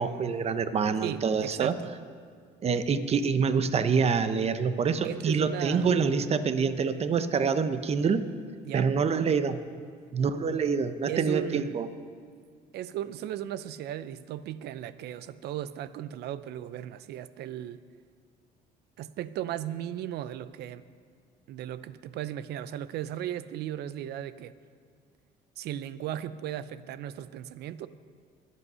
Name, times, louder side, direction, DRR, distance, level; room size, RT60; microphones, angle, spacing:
voice 1, 0.0-1.7 2.6-8.2 8.7-9.6 10.1-11.9, right 5 dB, 40° right, 11 dB, 0.9 m, -26 dB
voice 2, 1.0-1.9 5.0-6.0 8.6-8.9 11.1-11.8 12.7-17.8 19.0-20.8 21.5-24.5 25.6-27.9, right 11 dB, 75° right, 15 dB, 0.7 m, -36 dB
23.5 x 8.4 x 5.6 m, 2.1 s
cardioid pair, 110°, 17 cm